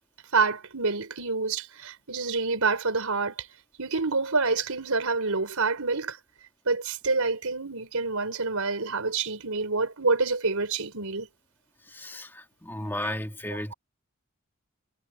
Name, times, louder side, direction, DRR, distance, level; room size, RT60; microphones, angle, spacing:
voice 1, 0.3-3.5 3.8-6.2 6.6-11.3, right 4 dB, 90° right, 4.5 m, -27 dB
voice 2, 11.8-13.7, left 1 dB, 10° left, 2.3 m, -34 dB
head